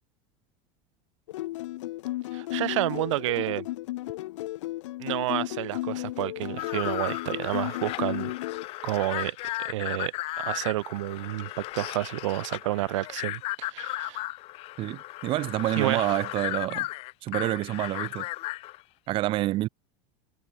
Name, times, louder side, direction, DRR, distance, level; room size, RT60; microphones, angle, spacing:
sound 1, 1.3-8.7, left 17 dB, 90° left, 6.3 m, -34 dB
voice 1, 2.3-3.7 5.0-8.3 8.8-14.3 15.8-16.1, right 17 dB, 90° right, 4.5 m, -30 dB
sound 2, 6.6-18.8, left 19 dB, 40° left, 1.8 m, -35 dB
voice 2, 14.8-16.9 17.2-18.3 19.1-19.7, right 16 dB, 35° right, 1.4 m, -28 dB
supercardioid pair, 165°, 15 cm